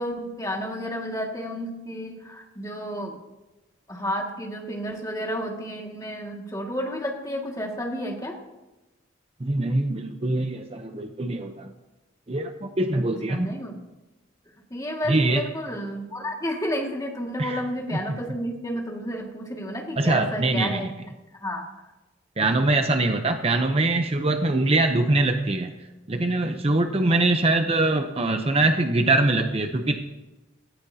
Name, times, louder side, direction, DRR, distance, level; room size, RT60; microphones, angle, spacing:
voice 1, 0.0-3.1 3.9-8.3 12.9-13.0 13.3-13.7 14.7-20.9 21.4-21.6, equal, 15° left, 0 dB, 2.0 m, -31 dB
voice 2, 9.4-11.7 12.3-13.5 15.1-15.4 17.4-17.6 17.9-18.0 18.3-18.4 20.0-20.9 22.4-25.7 26.1-30.0, right 2 dB, 30° right, 6 dB, 0.7 m, -23 dB
17.0 x 14.0 x 2.8 m, 1.1 s
head